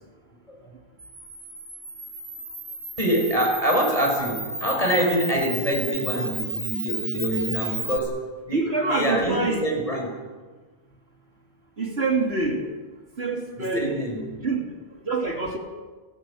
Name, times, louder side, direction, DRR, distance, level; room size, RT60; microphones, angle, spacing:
Camera, 1.0-8.0, right 2 dB, 50° right, 3.2 m, -33 dB
voice 1, 3.0-10.1 13.6-14.4, equal, 35° left, 1 dB, 5.9 m, -25 dB
voice 2, 8.5-9.6 11.8-12.7 13.2-14.0 14.4-14.7 15.1-15.6, right 3 dB, 80° right, 2 dB, 3.4 m, -25 dB
30.0 x 13.0 x 8.6 m, 1.4 s
omnidirectional pair, 1.1 m